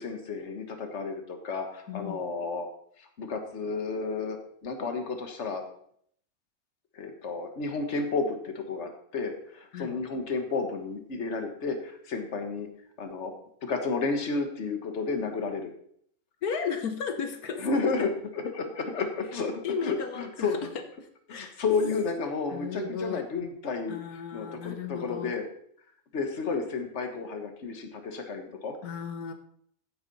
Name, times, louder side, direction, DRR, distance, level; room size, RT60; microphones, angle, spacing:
voice 1, 0.0-2.7 3.0-5.6 6.9-12.7 13.0-13.3 13.6-15.7 17.6-18.1 18.5-20.7 21.3-24.0 24.3-25.5 26.1-28.7, left 4 dB, 50° left, 5 dB, 1.7 m, -32 dB
voice 2, 1.9-2.2 9.7-10.0 16.4-17.7 18.0-18.1 18.5-18.6 19.6-20.6 21.3-21.6 22.5-23.2 23.9-25.3 28.8-29.3, left 6 dB, 85° left, 7 dB, 1.5 m, -34 dB
15.0 x 8.5 x 4.1 m, 0.66 s
omnidirectional pair, 1.5 m